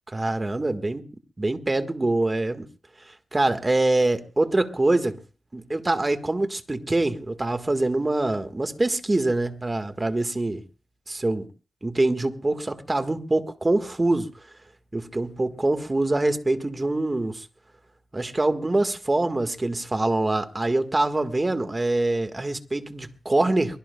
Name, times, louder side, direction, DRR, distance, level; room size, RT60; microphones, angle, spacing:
voice 1, 0.1-1.0 1.4-2.6 3.3-5.2 5.5-10.6 11.1-11.5 11.8-14.3 14.9-17.5 18.1-23.8, right 2 dB, 25° right, 1.6 m, -24 dB
23.5 x 22.5 x 2.3 m
wide cardioid pair, 130°, 0 cm